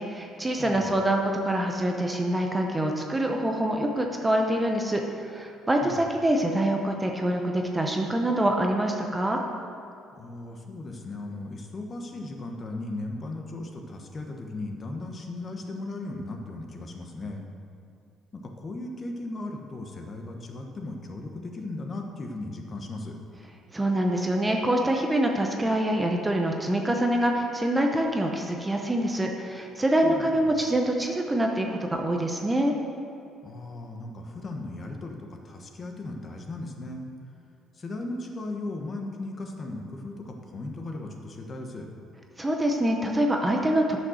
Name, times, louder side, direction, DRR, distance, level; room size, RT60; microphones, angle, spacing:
voice 1, 0.0-9.4 23.7-32.7 42.4-44.0, right 1 dB, 10° right, 2 dB, 0.8 m, -25 dB
voice 2, 0.6-1.0 5.8-6.0 10.2-17.4 18.3-23.2 30.0-30.4 33.4-37.0 37.7-41.9, left 2 dB, 30° left, 3 dB, 1.1 m, -37 dB
10.5 x 6.4 x 6.3 m, 2.5 s
cardioid pair, 145°, 0 cm